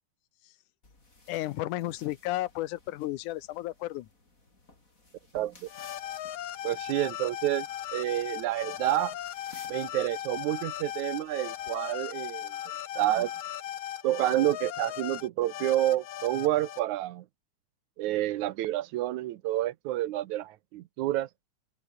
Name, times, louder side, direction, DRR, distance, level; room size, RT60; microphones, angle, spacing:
sound 1, 0.8-11.8, left 2 dB, 25° left, 5.3 m, -58 dB
voice 1, 1.3-4.1, left 16 dB, 85° left, 2.3 m, -33 dB
voice 2, 5.3-5.7 6.6-7.7 7.9-9.1 9.7-12.5 13.0-13.3 14.0-17.3 18.0-21.3, right 15 dB, 75° right, 2.1 m, -29 dB
sound 2, 5.7-16.8, left 12 dB, 70° left, 2.6 m, -38 dB
open air
omnidirectional pair, 3.5 m